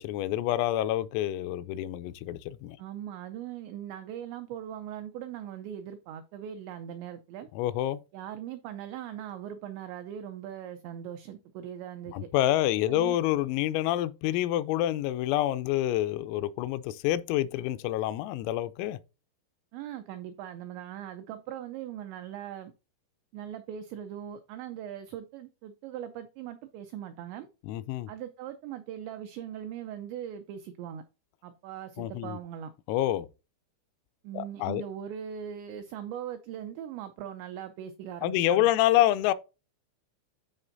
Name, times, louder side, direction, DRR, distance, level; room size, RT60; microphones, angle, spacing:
voice 1, 0.0-2.8 7.6-8.0 12.1-19.0 27.6-28.1 32.0-32.4 32.9-33.3 34.3-34.8 38.2-39.3, left 13 dB, 85° left, 3.2 m, -27 dB
voice 2, 2.8-7.5 8.1-12.1 12.9-13.2 19.7-22.7 23.3-27.5 28.1-31.0 31.4-32.7 34.2-38.7, right 10 dB, 90° right, 2.5 m, -40 dB
13.0 x 4.4 x 2.6 m
omnidirectional pair, 6.0 m